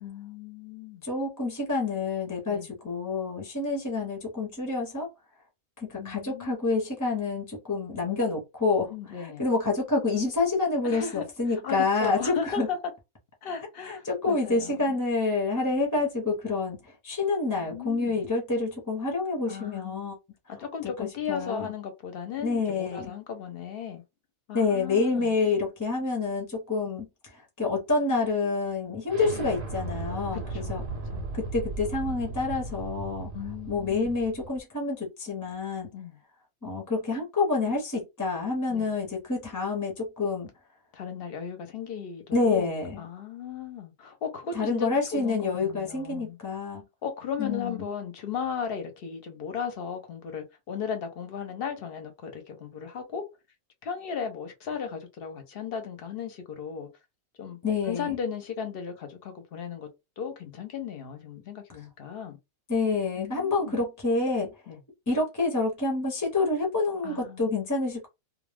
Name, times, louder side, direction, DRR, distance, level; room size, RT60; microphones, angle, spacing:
voice 1, 0.0-1.0 2.5-2.7 6.0-6.6 8.9-9.4 10.8-12.8 13.4-15.0 17.5-18.3 19.5-20.1 20.5-24.0 24.5-25.3 30.3-31.4 33.3-34.1 35.9-36.2 38.7-38.9 40.9-46.4 47.0-53.2 53.8-56.9 57.4-57.6 57.9-59.9 60.2-62.4 63.2-63.8 64.7-64.8 67.0-67.6, left 7 dB, 55° left, 0.7 m, -36 dB
voice 2, 1.0-5.1 5.8-12.7 13.9-20.2 20.8-21.7 22.4-23.1 24.5-30.8 31.3-33.3 33.7-35.9 36.6-40.5 42.3-43.0 44.5-46.8 47.4-47.9 57.6-58.1 62.7-64.5 65.1-68.1, left 3 dB, 20° left, 0.5 m, -28 dB
Explosion, 29.1-34.6, right 3 dB, 55° right, 0.6 m, -36 dB
2.2 x 2.1 x 3.3 m
omnidirectional pair, 1.4 m